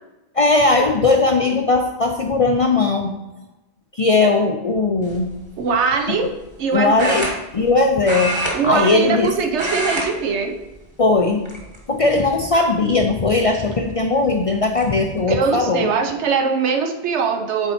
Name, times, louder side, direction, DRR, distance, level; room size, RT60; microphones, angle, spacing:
voice 1, 0.3-3.1 3.9-5.3 6.7-7.3 7.5-8.3 8.6-9.3 11.0-11.4 11.9-15.9, left 3 dB, 50° left, 3 dB, 0.4 m, -18 dB
sound 1, 5.0-5.3 7.0-7.8 8.0-9.2 9.5-10.1 10.4-10.6 11.4-12.0 12.5-12.6 14.1-14.2 14.5-14.9, right 1 dB, 25° right, 1.3 m, -26 dB
voice 2, 5.6-6.3 6.6-7.2 8.5-10.6 15.3-17.7, right 5 dB, 80° right, 5 dB, 1.1 m, -21 dB
7.1 x 4.3 x 4.2 m, 1.0 s
omnidirectional pair, 1.1 m